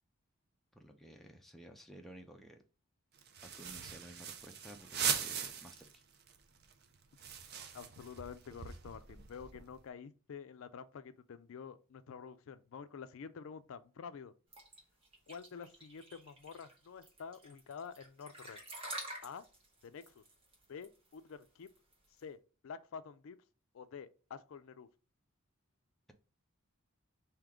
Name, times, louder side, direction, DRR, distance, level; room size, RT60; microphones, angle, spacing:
voice 1, 0.7-2.6 3.4-6.0, equal, ahead, 0.5 m, -54 dB
sound 1, 3.2-5.9 6.3-6.4 6.6-9.8, right 7 dB, 45° right, 0.5 m, -40 dB
voice 2, 7.7-14.3 15.3-18.6 19.2-19.4 19.8-20.2 20.7-21.7 22.2-22.4 22.6-23.4 23.7-24.9, left 6 dB, 65° left, 0.4 m, -48 dB
sound 2, 14.5-22.2, right 1 dB, 25° right, 1.4 m, -48 dB
3.6 x 2.8 x 4.8 m
head